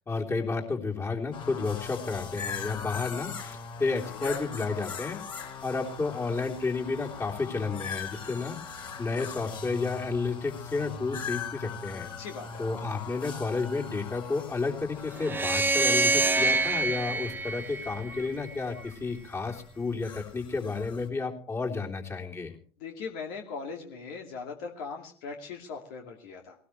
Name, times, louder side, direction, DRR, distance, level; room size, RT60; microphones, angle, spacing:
voice 1, 0.1-5.2 5.6-12.1 12.6-22.6, left 4 dB, 20° left, 1 dB, 3.4 m, -31 dB
sound 1, 1.3-21.1, left 5 dB, 40° left, 4.8 m, -41 dB
voice 2, 4.0-4.4 12.2-12.7 22.8-26.5, left 5 dB, 60° left, 2 dB, 2.4 m, -39 dB
sound 2, 15.2-18.5, right 3 dB, 15° right, 1.0 m, -26 dB
19.5 x 18.5 x 3.2 m, 0.43 s
figure-of-eight pair, 65°, 13 cm